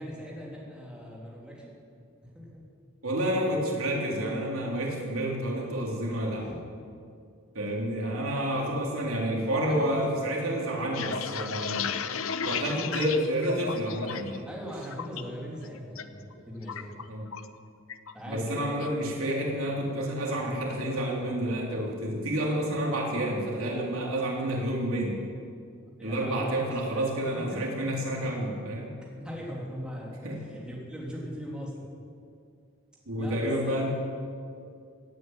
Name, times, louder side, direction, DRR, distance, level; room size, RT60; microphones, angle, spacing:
voice 1, 0.0-1.7 2.2-2.6 6.3-6.6 9.6-10.2 11.6-11.8 12.4-13.2 14.4-17.1 18.1-18.7 26.0-26.5 26.8-27.1 27.3-27.7 29.2-31.9 33.2-33.8, equal, 5° right, -4 dB, 3.2 m, -40 dB
voice 2, 3.0-6.5 7.5-11.9 12.5-14.4 17.1-17.3 18.3-25.2 26.0-28.9 30.2-30.4 33.1-33.9, right 1 dB, 85° right, -1 dB, 3.5 m, -29 dB
sound 1, 10.7-14.4 14.7-15.2 15.6-16.0 16.3-17.6 17.9-18.1 18.5-18.9, left 7 dB, 75° left, 0.8 m, -34 dB
17.0 x 9.3 x 9.0 m, 2.3 s
head